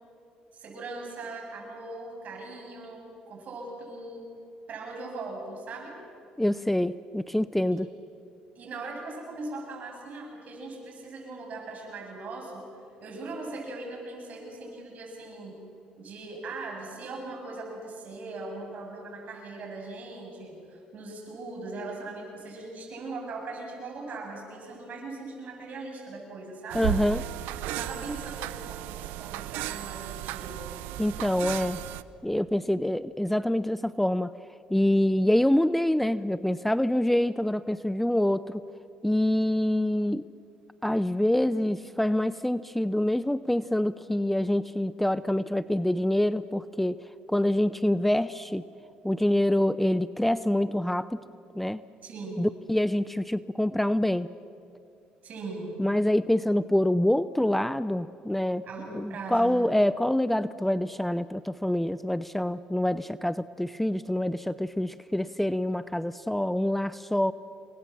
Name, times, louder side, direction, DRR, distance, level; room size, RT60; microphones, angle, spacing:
voice 1, 0.5-4.3 4.7-6.0 7.7-7.8 8.5-12.7 13.0-15.6 16.0-26.9 27.6-30.6 52.0-52.5 55.2-55.8 58.6-59.7, right 3 dB, 55° right, 1 dB, 8.0 m, -40 dB
voice 2, 6.4-7.9 26.7-27.2 31.0-31.8 32.2-34.3 34.7-38.6 39.0-40.2 40.8-47.0 47.3-48.6 49.0-51.2 51.6-51.8 52.4-54.3 55.8-58.6 58.9-67.3, left 1 dB, 5° left, 16 dB, 0.6 m, -26 dB
sound 1, 26.7-32.0, right 16 dB, 85° right, 0.7 m, -35 dB
27.5 x 22.0 x 7.4 m, 2.6 s
supercardioid pair, 75°, 3 cm